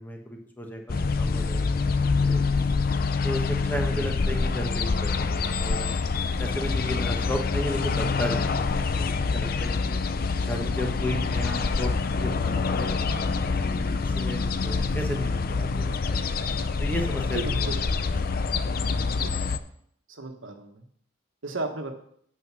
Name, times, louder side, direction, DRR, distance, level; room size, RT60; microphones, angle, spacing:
voice 1, 0.0-1.8 2.1-2.6 3.2-5.9 6.4-10.0 10.4-16.3 16.8-17.4, equal, 10° left, 1 dB, 1.2 m, -34 dB
sound 1, 0.9-19.6, left 4 dB, 45° left, 0.5 m, -26 dB
voice 2, 17.3-17.9 19.1-19.3 20.1-20.8 21.4-21.9, right 2 dB, 80° right, 5 dB, 1.3 m, -35 dB
9.0 x 5.6 x 6.1 m, 0.68 s
head